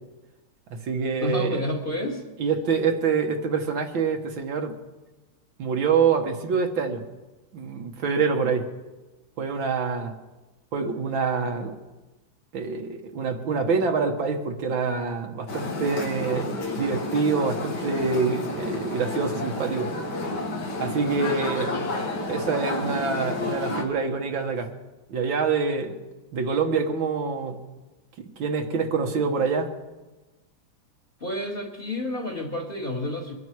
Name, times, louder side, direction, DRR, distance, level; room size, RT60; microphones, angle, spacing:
voice 1, 0.7-1.6 2.4-4.7 5.6-7.0 7.5-8.7 9.4-10.1 10.7-11.7 12.5-16.5 16.8-19.9 20.8-21.7 22.3-24.7 25.1-26.0 26.3-27.6 28.2-29.7, right 5 dB, 70° right, 4 dB, 2.0 m, -26 dB
voice 2, 1.2-2.2 31.2-33.3, left 1 dB, 25° left, 1 dB, 2.2 m, -30 dB
sound 1, 15.5-23.8, left 2 dB, 60° left, 2.3 m, -31 dB
23.5 x 12.0 x 4.7 m, 1.2 s
omnidirectional pair, 2.2 m